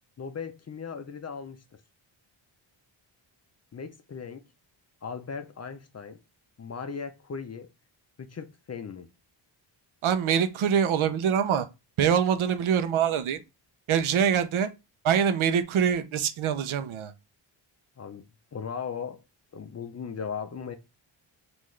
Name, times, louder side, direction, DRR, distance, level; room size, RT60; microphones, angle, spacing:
voice 1, 0.2-1.8 3.7-4.4 5.0-6.2 6.6-7.7 8.2-9.1 18.0-18.2 18.5-19.2 19.5-20.8, left 6 dB, 35° left, 0.5 m, -37 dB
voice 2, 10.0-11.7 12.0-13.4 13.9-14.7 15.0-17.1, right 8 dB, 70° right, 0.7 m, -24 dB
5.5 x 2.6 x 3.1 m
cardioid pair, 100°, 50 cm